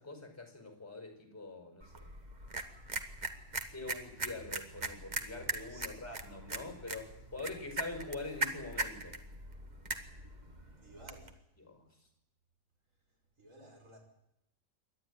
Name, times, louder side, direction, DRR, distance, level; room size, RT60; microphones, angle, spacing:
voice 1, 0.0-2.1 3.7-9.2 11.6-11.9, left 2 dB, 10° left, 5 dB, 5.1 m, -44 dB
sound 1, 1.8-11.3, right 2 dB, 35° right, 1.5 m, -41 dB
voice 2, 5.7-6.2 10.7-11.5 13.1-14.0, right 1 dB, 75° right, 1 dB, 6.3 m, -56 dB
27.5 x 12.0 x 9.8 m, 0.82 s
omnidirectional pair, 1.4 m